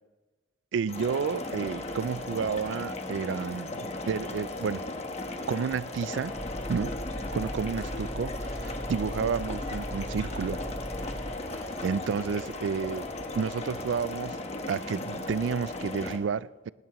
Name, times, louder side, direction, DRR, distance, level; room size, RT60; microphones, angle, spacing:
voice 1, 0.7-4.8 5.5-6.3 6.7-6.9 7.3-10.6 11.6-14.4 14.7-16.7, right 6 dB, 75° right, 0.3 m, -31 dB
sound 1, 0.9-16.2, left 2 dB, 35° left, 1.2 m, -36 dB
sound 2, 6.3-11.4, equal, 5° right, 0.6 m, -38 dB
sound 3, 7.2-13.5, right 1 dB, 55° right, 2.2 m, -52 dB
19.5 x 18.0 x 3.1 m
head